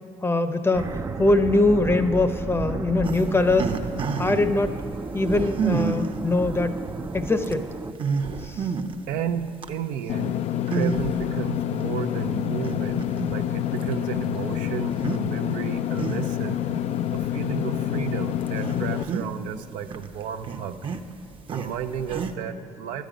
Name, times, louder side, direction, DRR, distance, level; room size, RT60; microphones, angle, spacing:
voice 1, 0.2-3.8 4.2-4.8 5.1-6.8 7.1-7.7 8.4-8.7, left 2 dB, 20° left, 9 dB, 0.7 m, -22 dB
sound 1, 0.7-7.9, right 4 dB, 25° right, 0.4 m, -33 dB
sound 2, 3.0-4.5 5.2-6.2 6.9-7.0 7.4-7.5 7.9-9.0 9.4-9.7 10.7-11.3 11.8-11.9 12.6-13.4 13.8-13.9 14.9-15.2 15.6-16.5 17.2-17.3 17.9-18.0 18.4-19.6 19.8-22.3, right 5 dB, 40° right, 0.8 m, -29 dB
voice 2, 9.1-10.4 10.7-16.6 17.1-20.8 21.5-23.1, right 8 dB, 75° right, 7 dB, 0.6 m, -33 dB
Engine / Mechanisms, 10.1-19.0, left 11 dB, 55° left, 0.4 m, -27 dB
12.5 x 10.5 x 5.1 m, 2.4 s
supercardioid pair, 75°, 13 cm